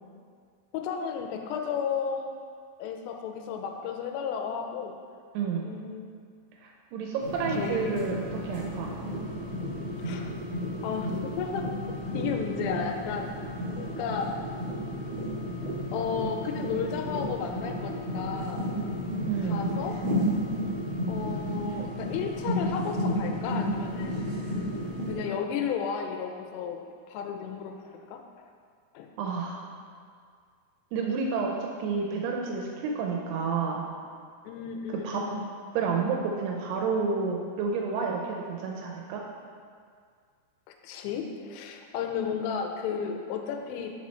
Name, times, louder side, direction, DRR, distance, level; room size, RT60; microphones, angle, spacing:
voice 1, 0.7-2.3 2.8-5.0 5.6-6.1 7.5-8.0 9.0-9.5 10.0-10.3 10.8-11.7 12.1-13.3 13.8-14.4 15.9-18.7 19.4-20.0 21.1-24.3 25.0-26.8 27.1-28.2 28.9-29.1 34.5-35.5 40.8-44.0, left 6 dB, 85° left, 4 dB, 2.7 m, -33 dB
voice 2, 5.3-5.7 6.6-8.1 8.4-8.9 19.3-19.8 29.2-29.7 30.9-33.8 34.9-35.2 35.8-39.2, right 5 dB, 80° right, 0 dB, 2.4 m, -30 dB
sound 1, 7.2-25.1, equal, 60° right, 1.7 m, -32 dB
6.1 x 4.2 x 4.2 m, 2.1 s
omnidirectional pair, 4.9 m